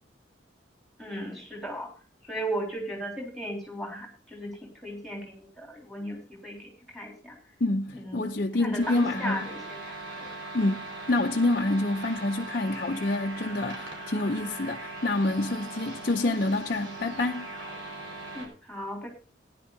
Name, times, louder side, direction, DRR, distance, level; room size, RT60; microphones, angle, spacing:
voice 1, 1.0-1.9 2.2-7.4 7.9-8.3 8.6-9.8 10.2-10.3 18.3-19.1, right 1 dB, ahead, 3.6 m, -36 dB
voice 2, 7.6-9.4 10.5-17.5, left 2 dB, 50° left, 0.7 m, -27 dB
sound 1, 8.8-18.5, right 2 dB, 90° right, 4.8 m, -40 dB
17.0 x 10.5 x 2.7 m
head